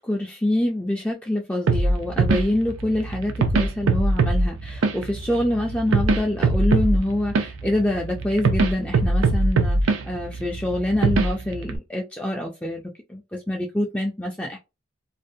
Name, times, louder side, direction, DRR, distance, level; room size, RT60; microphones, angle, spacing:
voice 1, 0.0-12.8 13.1-14.6, left 1 dB, 5° left, 0.3 m, -26 dB
sound 1, 1.7-11.8, right 3 dB, 85° right, 0.5 m, -23 dB
2.5 x 2.0 x 2.6 m
head